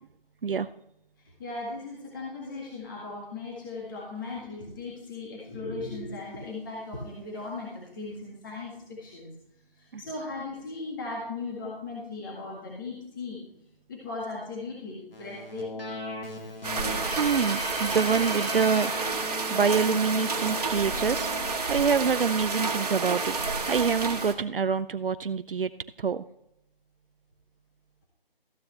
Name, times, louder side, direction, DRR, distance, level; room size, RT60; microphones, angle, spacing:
voice 1, 1.4-9.3 9.8-13.4 13.9-15.8, left 3 dB, 20° left, -4 dB, 1.9 m, -37 dB
Keyboard (musical), 15.1-21.6, left 1 dB, 70° left, 3.5 m, -38 dB
sound 1, 16.6-24.3, right 4 dB, 40° right, 1.6 m, -30 dB
voice 2, 17.2-18.9 19.5-21.3 21.7-25.7 26.0-26.2, right 6 dB, 70° right, 13 dB, 0.6 m, -26 dB
14.5 x 9.5 x 3.3 m, 0.81 s
figure-of-eight pair, 170°, 29 cm